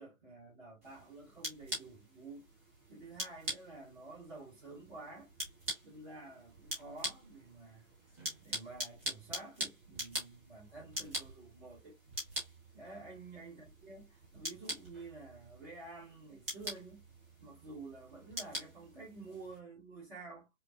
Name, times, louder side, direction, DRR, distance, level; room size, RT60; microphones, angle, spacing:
voice 1, 0.0-2.5 2.9-5.3 5.8-7.9 8.4-11.9 12.7-17.0 17.4-20.5, right 3 dB, 40° right, 2.1 m, -50 dB
sound 1, 0.8-19.6, equal, 10° right, 0.8 m, -44 dB
5.0 x 2.4 x 2.4 m
figure-of-eight pair, 140°, 41 cm